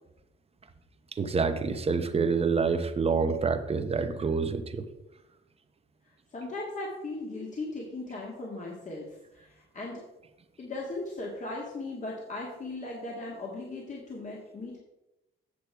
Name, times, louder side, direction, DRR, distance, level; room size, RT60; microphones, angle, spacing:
voice 1, 1.2-4.8, right 5 dB, 30° right, 8 dB, 1.0 m, -27 dB
voice 2, 6.3-10.0 10.6-14.8, left 2 dB, 40° left, -3 dB, 1.9 m, -38 dB
8.6 x 6.6 x 4.6 m, 0.95 s
cardioid pair, 90°, 20 cm